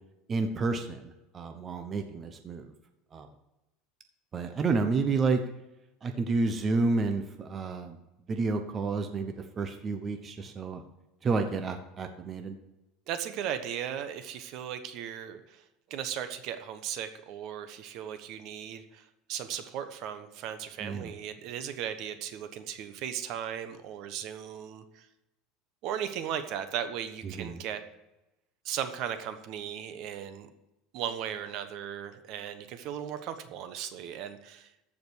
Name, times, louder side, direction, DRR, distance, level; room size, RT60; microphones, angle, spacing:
voice 1, 0.3-2.7 3.1-3.3 4.3-5.4 6.0-8.0 8.3-10.8 11.2-12.6 20.8-21.1 27.2-27.6, right 4 dB, 25° right, 6 dB, 0.9 m, -30 dB
voice 2, 13.1-15.6 15.9-25.1 25.8-27.8 28.6-30.5 30.9-34.7, right 9 dB, 50° right, 9 dB, 1.1 m, -37 dB
14.0 x 5.2 x 6.3 m, 0.94 s
supercardioid pair, 150°, 0 cm